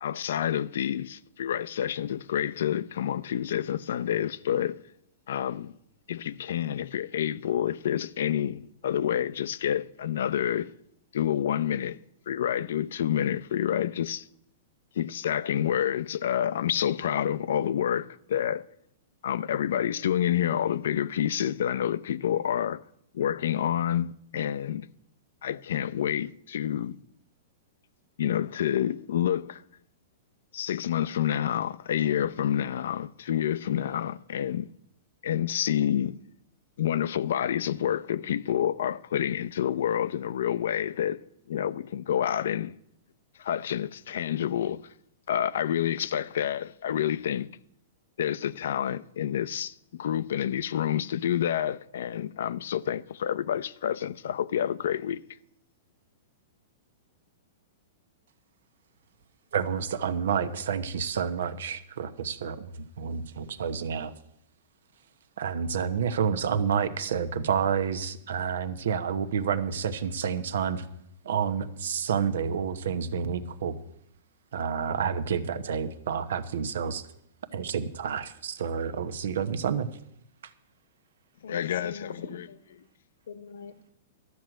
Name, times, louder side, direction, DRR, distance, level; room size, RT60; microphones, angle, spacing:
voice 1, 0.0-4.8 5.3-5.7 6.1-10.7 11.1-12.0 12.3-14.2 15.0-18.7 19.2-22.8 23.1-24.9 25.4-27.0 28.2-29.6 30.5-34.7 35.2-36.2 36.8-41.2 41.5-42.7 43.4-44.8 45.3-47.5 48.2-55.2 81.5-82.1, left 10 dB, 70° left, 0.5 m, -28 dB
voice 2, 59.5-64.1 65.4-70.9 71.2-73.8 74.5-77.0 77.5-79.9, right 7 dB, 75° right, 1.0 m, -29 dB
voice 3, 81.4-82.8 83.3-83.9, left 6 dB, 90° left, 1.3 m, -43 dB
13.0 x 6.3 x 8.9 m
hypercardioid pair, 160°, 0 cm